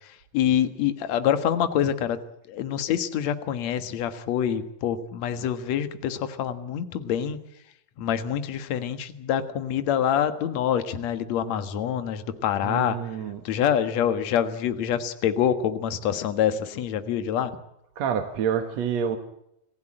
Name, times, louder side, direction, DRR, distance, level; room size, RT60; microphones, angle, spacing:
voice 1, 0.0-2.2 2.5-7.4 8.0-13.0 13.4-17.5, left 9 dB, 55° left, 2.3 m, -26 dB
voice 2, 12.6-13.4 18.0-19.2, right 7 dB, 55° right, 2.2 m, -27 dB
27.0 x 15.5 x 8.8 m
omnidirectional pair, 4.5 m